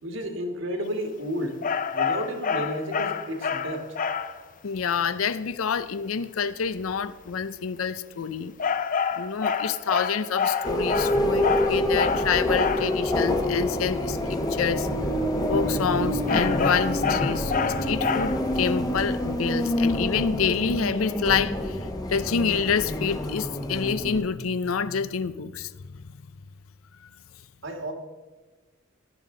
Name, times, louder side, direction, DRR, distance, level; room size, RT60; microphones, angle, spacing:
voice 1, 0.0-1.6 1.9-3.9 27.6-27.9, equal, 65° right, 4 dB, 1.8 m, -31 dB
sound 1, 1.6-4.4 8.6-12.9 16.3-18.5, left 6 dB, 40° left, 0.6 m, -27 dB
voice 2, 4.6-8.5 9.2-14.9 15.5-17.5 17.8-21.8 22.1-25.7, left 6 dB, 90° left, 15 dB, 0.5 m, -27 dB
sound 2, 10.6-24.2, left 1 dB, 20° left, 1.0 m, -27 dB
17.0 x 11.0 x 3.8 m, 1.2 s
head